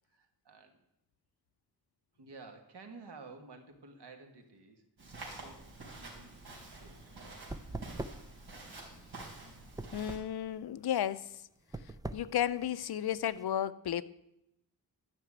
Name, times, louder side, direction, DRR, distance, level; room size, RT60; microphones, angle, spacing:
voice 1, 0.1-0.8 2.1-4.9 5.3-6.4 6.7-7.1, right 4 dB, 90° right, 5 dB, 1.8 m, -53 dB
Walk footsteps, 5.0-10.2, right 2 dB, 70° right, 3.7 m, -48 dB
sound 1, 7.0-13.4, right 2 dB, 10° right, 0.4 m, -45 dB
voice 2, 9.9-11.4 12.1-14.0, left 10 dB, 70° left, 15 dB, 0.6 m, -33 dB
12.5 x 5.9 x 8.6 m, 0.83 s
wide cardioid pair, 165°, 39 cm